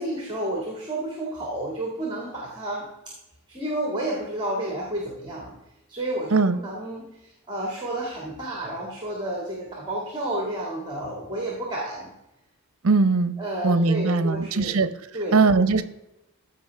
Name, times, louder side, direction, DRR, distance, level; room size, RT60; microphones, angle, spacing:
voice 1, 0.0-2.9 3.5-5.6 5.9-12.1 13.4-14.8 15.1-15.4, right 1 dB, 20° right, -2 dB, 1.9 m, -31 dB
voice 2, 12.8-13.4 13.6-14.9 15.3-15.8, right 4 dB, 65° right, 13 dB, 0.7 m, -20 dB
14.5 x 5.4 x 3.4 m, 0.90 s
head